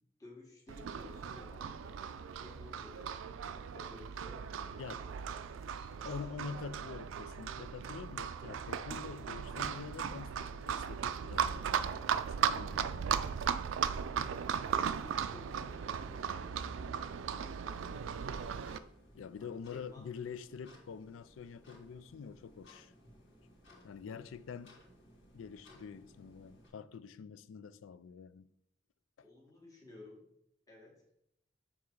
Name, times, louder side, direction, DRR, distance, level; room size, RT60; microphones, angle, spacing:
voice 1, 0.2-6.1 14.3-18.6 19.4-20.0 24.1-24.2 29.2-30.3 30.7-31.0, left 2 dB, 20° left, 1.7 m, -55 dB
Livestock farm animals working animals, 0.7-18.8, right 7 dB, 80° right, 0.4 m, -37 dB
voice 2, 6.0-13.3 19.1-22.9 23.8-24.8 25.3-28.5, left 6 dB, 90° left, 0.4 m, -46 dB
sound 1, 17.7-26.7, left 1 dB, 65° left, 2.3 m, -60 dB
7.2 x 3.6 x 4.6 m
head